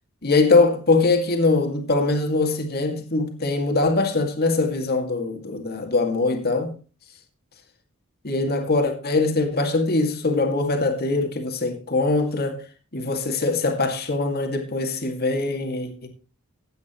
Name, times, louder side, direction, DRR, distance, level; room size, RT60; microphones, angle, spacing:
voice 1, 0.2-6.7 8.2-12.6 12.9-16.1, left 3 dB, 50° left, 2.2 m, -22 dB
15.5 x 9.3 x 3.1 m
head